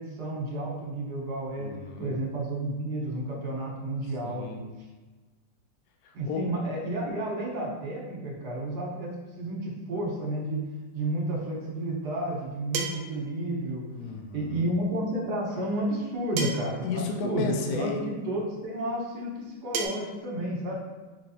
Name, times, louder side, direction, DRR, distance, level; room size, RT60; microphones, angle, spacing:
voice 1, 0.0-1.7 2.0-4.6 6.1-10.6 10.9-13.8 14.3-20.8, right 1 dB, 65° right, -2 dB, 1.6 m, -31 dB
voice 2, 1.6-2.2 4.2-4.6 6.0-6.4 14.0-14.7 16.8-18.0, left 5 dB, 70° left, 3 dB, 0.9 m, -34 dB
sound 1, 11.0-11.1 12.7-13.2 14.7-14.8 16.4-16.8 18.0-18.1 19.7-19.9, right 4 dB, 80° right, 1.2 m, -31 dB
5.0 x 3.2 x 2.8 m, 1.2 s
omnidirectional pair, 2.0 m